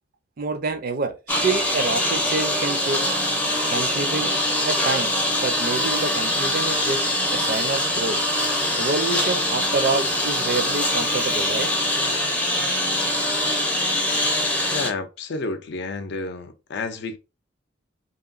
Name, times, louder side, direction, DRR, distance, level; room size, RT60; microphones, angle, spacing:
voice 1, 0.4-1.1 1.4-3.1 3.7-4.3 4.6-7.0 7.3-8.2 8.8-11.7, right 3 dB, 50° right, 0.4 m, -27 dB
Engine, 1.3-14.9, left 1 dB, 10° left, 0.5 m, -23 dB
voice 2, 14.7-17.2, left 3 dB, 60° left, 0.4 m, -30 dB
2.9 x 2.6 x 2.4 m
head